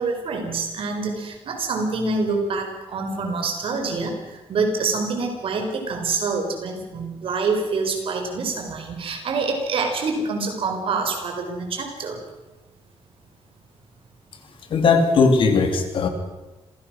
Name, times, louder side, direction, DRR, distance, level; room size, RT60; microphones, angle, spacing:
voice 1, 0.0-12.2, right 4 dB, 60° right, 4 dB, 4.4 m, -26 dB
voice 2, 14.7-16.1, left 4 dB, 55° left, 6 dB, 2.8 m, -18 dB
26.5 x 16.5 x 6.2 m, 1.1 s
wide cardioid pair, 170°, 10 cm